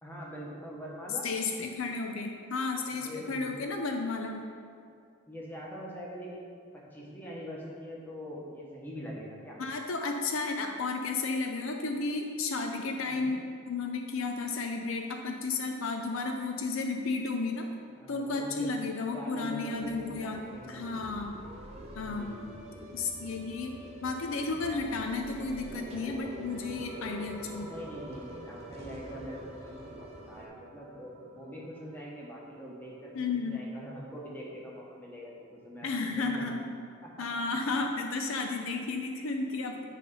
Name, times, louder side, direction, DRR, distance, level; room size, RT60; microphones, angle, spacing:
voice 1, 0.0-1.2 2.9-3.5 5.3-9.6 13.0-13.3 17.9-20.8 22.0-22.6 27.6-35.3 35.6-36.5 37.0-37.3 37.9-38.0, equal, 10° left, -4 dB, 1.1 m, -43 dB
voice 2, 1.2-4.4 9.6-13.4 13.7-17.7 18.1-20.4 20.7-21.5 21.9-22.3 22.9-27.7 33.1-33.6 35.8-36.6 37.2-39.8, left 3 dB, 70° left, 3 dB, 0.5 m, -33 dB
sound 1, 19.7-30.5, right 1 dB, 30° right, 0.7 m, -47 dB
sound 2, 25.1-35.9, right 2 dB, 85° right, 0.9 m, -50 dB
9.2 x 3.3 x 5.4 m, 2.3 s
head